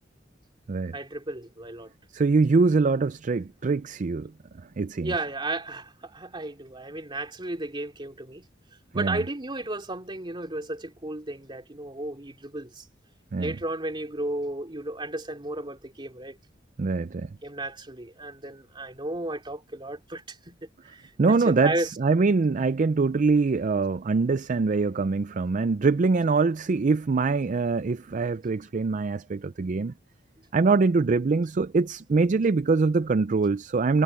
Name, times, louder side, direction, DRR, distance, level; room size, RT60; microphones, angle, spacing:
voice 1, 0.9-1.9 5.0-8.5 8.9-12.8 13.4-16.4 17.4-21.9, right 2 dB, 25° right, 3.1 m, -34 dB
voice 2, 2.1-4.3 4.8-5.1 8.9-9.2 13.3-13.6 16.8-17.3 21.2-29.9 30.5-34.0, right 4 dB, 45° right, 0.4 m, -23 dB
head